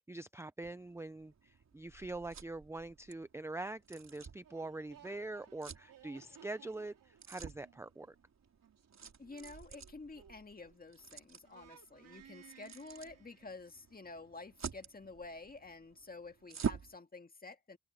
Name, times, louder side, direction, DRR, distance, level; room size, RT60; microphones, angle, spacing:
voice 1, 0.0-8.2, right 2 dB, 10° right, 0.5 m, -44 dB
sound 1, 0.6-17.0, right 7 dB, 55° right, 3.4 m, -48 dB
sound 2, 4.4-11.1 11.4-13.8, right 8 dB, 75° right, 3.8 m, -61 dB
voice 2, 9.2-17.8, left 3 dB, 25° left, 1.9 m, -50 dB
wide cardioid pair, 115°, 33 cm